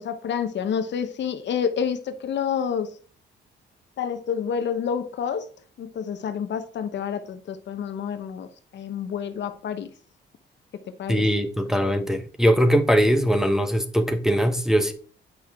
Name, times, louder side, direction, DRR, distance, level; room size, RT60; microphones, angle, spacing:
voice 1, 0.0-2.9 4.0-5.5 5.8-9.9 11.0-11.2, left 7 dB, 65° left, 1.0 m, -28 dB
voice 2, 11.1-14.9, equal, ahead, 1.0 m, -21 dB
8.3 x 5.8 x 3.6 m
cardioid pair, 90°, 20 cm